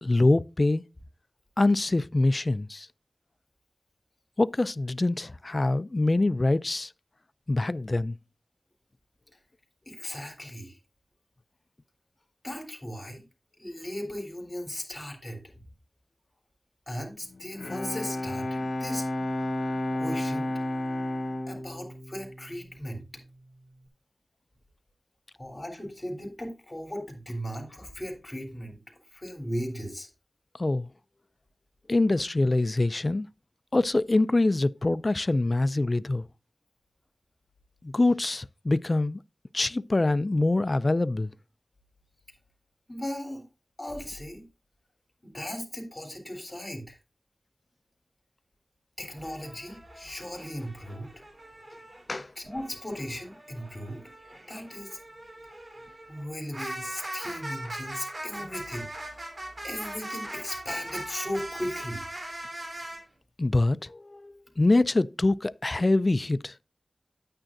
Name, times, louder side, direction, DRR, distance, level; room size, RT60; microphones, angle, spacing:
voice 1, 0.0-0.8 1.6-2.9 4.4-6.9 7.5-8.2 30.6-30.9 31.9-33.3 33.7-36.3 37.8-39.2 39.5-41.3 52.1-52.3 63.4-66.5, left 2 dB, 45° left, 0.3 m, -24 dB
voice 2, 9.9-10.8 12.4-13.2 13.6-15.4 16.9-19.0 19.9-20.5 21.5-23.0 25.4-28.8 29.1-30.1 42.9-43.4 43.8-44.4 45.2-47.0 49.0-51.1 52.4-54.0 54.5-55.0 56.1-59.1 59.6-62.0, equal, 30° left, 3.6 m, -37 dB
Bowed string instrument, 17.3-23.1, left 1 dB, 80° left, 1.1 m, -32 dB
sound 1, 49.1-52.0 52.5-63.0, right 1 dB, 50° right, 3.4 m, -40 dB
9.7 x 8.9 x 2.6 m
wide cardioid pair, 50°, 0 cm